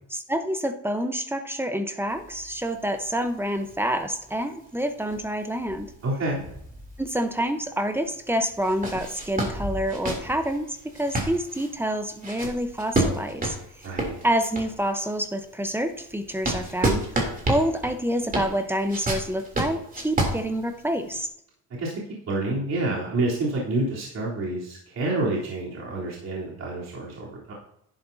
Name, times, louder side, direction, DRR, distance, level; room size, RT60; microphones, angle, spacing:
voice 1, 0.1-5.9 7.0-13.9 14.2-17.1 17.5-21.3, equal, 5° right, 8 dB, 1.0 m, -27 dB
sound 1, 2.1-7.4 7.8-7.9 8.5-14.9 15.4-21.2, right 1 dB, 20° right, 3.2 m, -30 dB
voice 2, 6.0-6.4 13.8-14.1 21.8-21.9 22.3-27.5, right 2 dB, 45° right, -6 dB, 3.7 m, -28 dB
11.5 x 10.0 x 2.8 m, 0.73 s
supercardioid pair, 95°, 37 cm